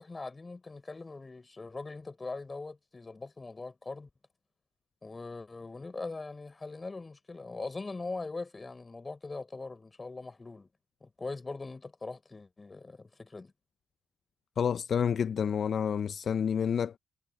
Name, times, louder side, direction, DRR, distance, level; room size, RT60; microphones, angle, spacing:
voice 1, 0.0-4.1 5.0-10.7 11.0-13.5, left 3 dB, 30° left, 6.9 m, -41 dB
voice 2, 14.6-17.0, left 7 dB, 55° left, 0.6 m, -29 dB
hypercardioid pair, 50°, 0 cm